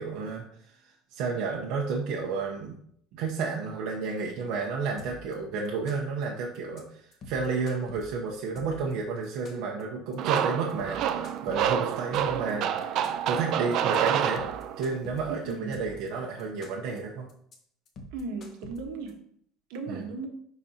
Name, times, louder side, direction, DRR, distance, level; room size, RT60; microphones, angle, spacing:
voice 1, 0.0-2.8 3.1-7.0 7.3-12.9 13.3-14.4 14.8-17.3 19.9-20.1, right 4 dB, 60° right, -1 dB, 0.8 m, -31 dB
sound 1, 5.0-5.3 5.6-6.2 6.5-6.8 7.1-8.9 9.2-9.8 10.1-10.4 10.7-12.5 12.8-13.4 13.7-14.0 14.3-16.1 16.4-17.0 17.3-17.5 17.9-19.1, equal, 35° left, 1.1 m, -46 dB
sound 2, 10.2-15.0, right 9 dB, 45° right, 0.5 m, -28 dB
voice 2, 15.3-15.8 18.1-19.2 19.7-20.3, right 4 dB, 75° right, 3 dB, 1.2 m, -36 dB
10.5 x 4.1 x 2.8 m, 0.67 s
cardioid pair, 175°, 0 cm